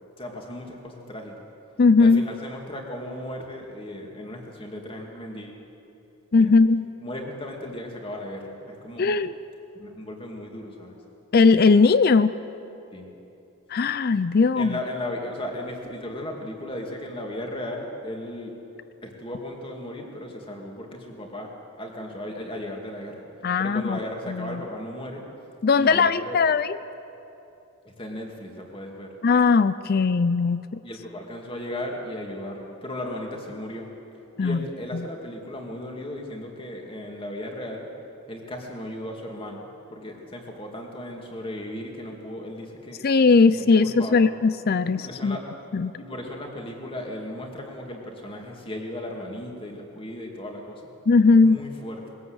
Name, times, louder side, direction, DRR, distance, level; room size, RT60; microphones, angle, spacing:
voice 1, 0.2-1.3 2.0-5.6 6.4-6.5 7.0-9.1 9.7-11.0 12.9-13.1 14.5-18.6 19.0-21.5 21.8-23.2 23.6-25.2 25.8-26.4 27.8-29.1 30.8-33.9 34.4-37.9 38.3-43.0 43.5-44.3 44.9-45.5 46.0-50.9 51.3-52.1, left 1 dB, 25° left, 1 dB, 2.5 m, -36 dB
voice 2, 1.8-2.2 6.3-6.9 9.0-9.3 11.3-12.4 13.7-14.8 23.4-24.0 24.3-24.6 25.6-26.8 29.2-30.8 34.4-34.6 43.0-45.4 45.7-45.9 51.1-51.6, left 4 dB, 45° left, 14 dB, 0.4 m, -19 dB
22.0 x 17.0 x 8.1 m, 2.9 s
head